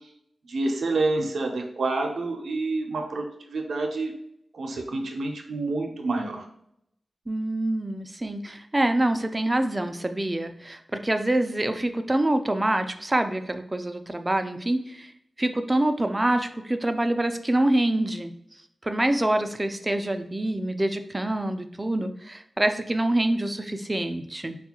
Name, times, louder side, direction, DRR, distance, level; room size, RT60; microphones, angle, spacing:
voice 1, 0.5-4.1 4.5-6.4, right 2 dB, 80° right, 3 dB, 0.6 m, -28 dB
voice 2, 7.3-15.1 15.4-18.3 18.8-24.6, right 1 dB, 25° right, 7 dB, 0.4 m, -26 dB
4.1 x 2.3 x 2.9 m, 0.72 s
cardioid pair, 55°, 0 cm